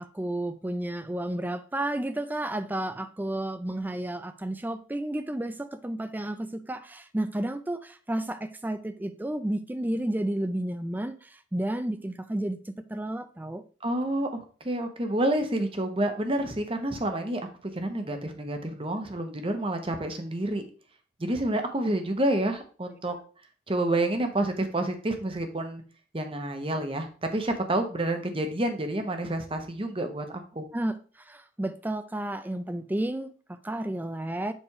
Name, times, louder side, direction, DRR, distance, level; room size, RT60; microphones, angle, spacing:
voice 1, 0.0-13.6 30.7-34.5, right 1 dB, 10° right, 0.3 m, -32 dB
voice 2, 13.8-20.6 21.2-23.1 23.7-25.8 26.1-30.3 30.5-30.7, right 1 dB, 25° right, 0.9 m, -29 dB
7.2 x 3.5 x 4.7 m
head